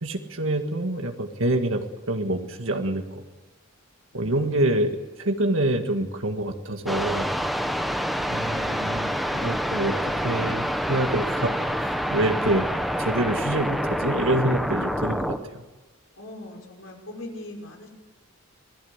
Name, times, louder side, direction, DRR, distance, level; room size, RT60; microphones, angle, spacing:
voice 1, 0.0-3.2 4.1-7.3 8.3-11.5 11.8-12.7 13.0-15.6, right 1 dB, 75° right, 4 dB, 1.9 m, -26 dB
voice 2, 4.1-4.6 16.1-17.9, left 1 dB, 80° left, 1 dB, 5.7 m, -41 dB
sound 1, 6.9-15.4, equal, ahead, 1.1 m, -27 dB
27.0 x 17.5 x 8.2 m, 1.2 s
head